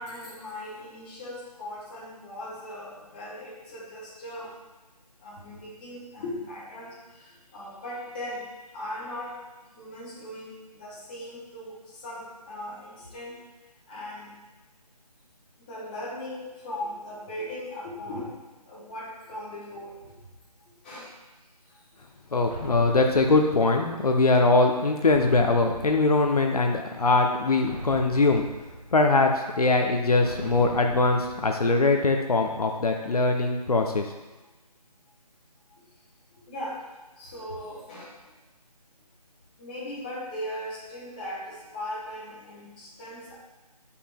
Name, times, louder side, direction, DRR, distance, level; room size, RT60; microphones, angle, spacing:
voice 1, 0.0-4.5 5.2-8.5 8.7-9.4 9.8-13.4 13.9-14.3 15.6-18.3 18.6-20.2 20.8-21.1 36.3-36.8 37.2-38.1 39.6-43.3, left 1 dB, 15° left, -7 dB, 1.0 m, -38 dB
voice 2, 22.3-28.5 28.9-34.1, left 3 dB, 65° left, 3 dB, 0.7 m, -22 dB
sound 1, 22.5-24.3 25.1-26.8 27.7-29.4 30.2-32.0, right 1 dB, 70° right, 1.4 m, -41 dB
8.3 x 5.5 x 2.2 m, 1.1 s
figure-of-eight pair, 160°, 21 cm